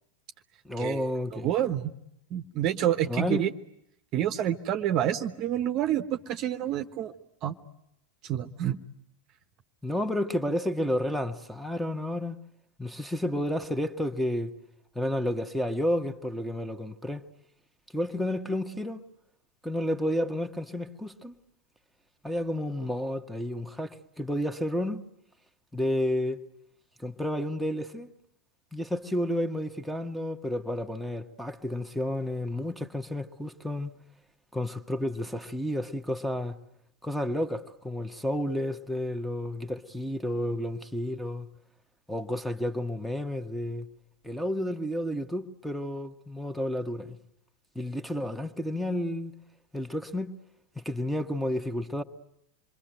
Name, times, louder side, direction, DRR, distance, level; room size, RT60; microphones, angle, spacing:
voice 1, 0.6-1.5 3.1-3.5 9.8-12.4 12.8-14.6 14.9-17.2 17.9-19.0 19.6-21.3 22.2-25.0 25.7-26.4 27.0-28.1 28.7-33.9 34.5-36.6 37.0-41.5 42.1-43.9 44.2-47.2 47.7-49.3 49.7-50.3 50.7-52.0, left 1 dB, ahead, 1.5 m, -31 dB
voice 2, 1.3-1.9 2.3-3.5 4.1-7.1 7.4-7.5 8.2-8.8, right 11 dB, 35° right, 1.1 m, -28 dB
27.5 x 23.5 x 9.2 m
figure-of-eight pair, 90°, 0 cm